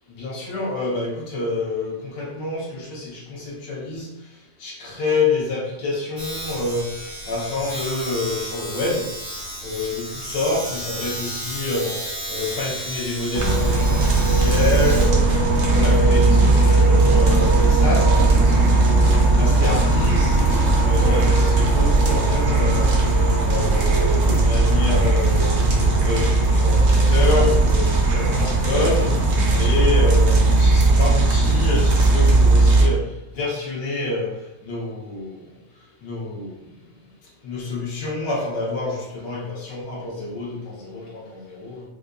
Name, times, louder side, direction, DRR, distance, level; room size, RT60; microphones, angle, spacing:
voice 1, 0.1-4.1 4.6-9.1 9.6-15.3 15.7-18.9 19.3-20.4 20.8-22.9 23.4-25.6 26.0-29.2 29.5-33.0 33.3-34.3 34.6-35.4 36.0-36.6 37.4-41.8, left 3 dB, 70° left, -5 dB, 1.4 m, -27 dB
Domestic sounds home sounds, 6.2-16.5, right 1 dB, 20° right, 0.9 m, -33 dB
sound 1, 13.3-32.8, right 2 dB, 70° right, 0.6 m, -17 dB
4.5 x 2.5 x 2.2 m, 0.89 s
omnidirectional pair, 2.0 m